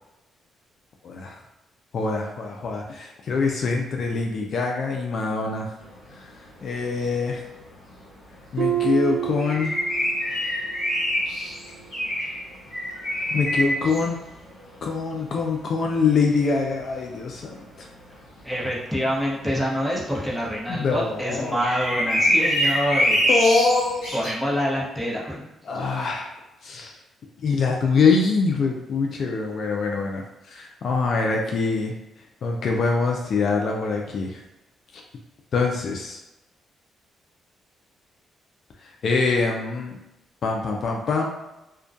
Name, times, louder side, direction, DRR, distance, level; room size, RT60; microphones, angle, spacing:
voice 1, 1.0-1.4 1.9-5.7 6.2-6.3 6.6-7.4 8.5-9.8 13.3-14.2 14.8-17.9 20.7-21.6 23.3-24.2 25.7-26.3 26.6-26.9 27.4-31.9 32.4-34.4 35.5-36.2 38.8-40.0 40.4-41.3, left 4 dB, 60° left, 0 dB, 0.3 m, -24 dB
sound 1, 5.8-6.4 6.6-6.7 6.9-19.2 19.6-20.1 20.4-20.5 20.7-24.3, equal, 85° left, 0.8 m, -26 dB
Harp, 8.6-10.3 10.7-11.1 11.7-11.8, right 12 dB, 65° right, 0.4 m, -28 dB
voice 2, 18.4-23.6 24.1-25.5, equal, 5° left, -5 dB, 0.8 m, -26 dB
2.2 x 2.2 x 2.5 m, 0.95 s
cardioid pair, 70°, 0 cm